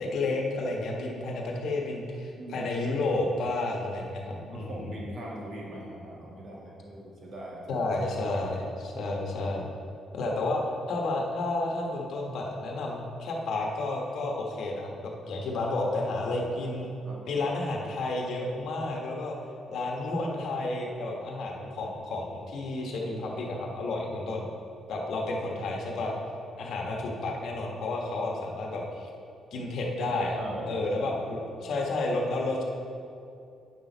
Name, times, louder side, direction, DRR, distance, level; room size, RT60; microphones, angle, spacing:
voice 1, 0.0-4.8 7.7-9.6 10.1-10.6 10.9-16.9 17.2-19.3 19.7-24.5 24.9-26.1 26.6-29.1 29.5-30.4 30.7-32.6, left 2 dB, 70° left, -1 dB, 1.2 m, -31 dB
voice 2, 2.4-2.7 4.4-7.9 17.0-17.2 30.3-31.2, right 1 dB, 55° right, -4 dB, 2.0 m, -41 dB
8.9 x 6.1 x 4.0 m, 2.6 s
cardioid pair, 90°, 0 cm